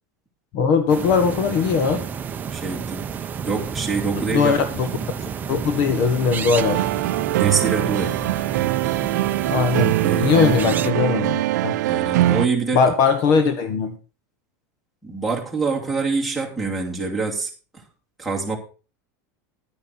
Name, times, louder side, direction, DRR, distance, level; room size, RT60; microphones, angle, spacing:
voice 1, 0.5-2.0 4.3-4.9 5.5-6.9 9.5-11.8 12.7-13.9, left 5 dB, 45° left, 10 dB, 1.4 m, -20 dB
sound 1, 0.9-10.9, right 7 dB, 20° right, 0.6 m, -30 dB
voice 2, 2.5-3.1 3.5-4.7 4.9-5.1 7.2-8.1 9.7-10.6 11.8-12.9 15.0-17.8 18.2-18.6, right 4 dB, ahead, 3 dB, 2.7 m, -26 dB
sound 2, 6.5-12.5, right 16 dB, 85° right, 0.5 m, -22 dB
11.0 x 9.5 x 4.4 m, 0.35 s
supercardioid pair, 155°, 9 cm